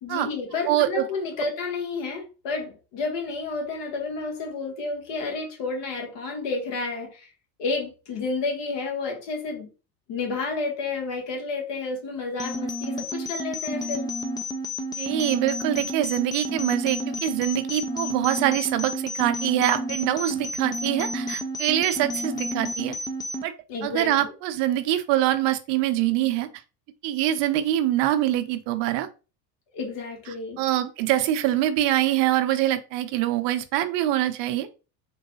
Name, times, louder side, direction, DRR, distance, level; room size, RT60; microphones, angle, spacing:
voice 1, 0.0-7.3 7.6-9.7 10.1-14.1 23.7-24.3 29.7-30.6, left 3 dB, 60° left, 1.4 m, -31 dB
voice 2, 0.7-1.1 15.0-23.0 23.4-23.5 23.8-26.5 27.0-29.1 30.6-34.7, right 13 dB, 55° right, 0.7 m, -24 dB
sound 1, 12.4-23.4, equal, 10° left, 0.3 m, -31 dB
3.8 x 2.2 x 2.8 m
hypercardioid pair, 80°, 50 cm